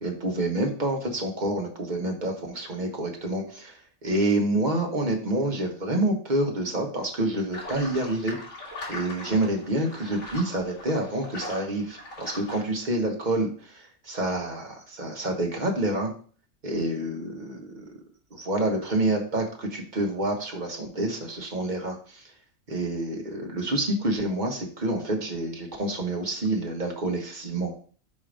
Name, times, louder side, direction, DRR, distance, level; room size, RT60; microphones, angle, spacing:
voice 1, 0.0-8.4 8.9-16.1 16.6-17.9 18.3-22.2 22.7-27.8, right 1 dB, 35° right, 1 dB, 1.3 m, -28 dB
sound 1, 7.5-12.6, left 2 dB, 75° left, 2.2 m, -40 dB
4.7 x 4.3 x 5.0 m, 0.43 s
omnidirectional pair, 1.4 m